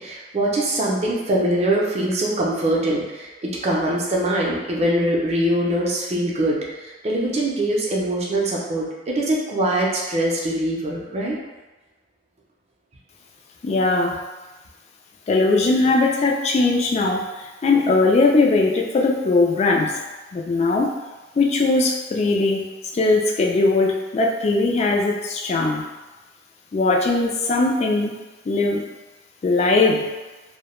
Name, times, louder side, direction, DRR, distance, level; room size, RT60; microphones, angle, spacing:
voice 1, 0.0-11.4, right 1 dB, 35° right, -3 dB, 0.5 m, -23 dB
voice 2, 13.6-14.2 15.3-20.0 20.3-20.9 21.4-22.7 22.9-25.8 26.7-28.2 28.5-28.8 29.4-30.1, left 3 dB, 35° left, 0 dB, 0.3 m, -19 dB
2.2 x 2.0 x 2.9 m, 1.1 s
head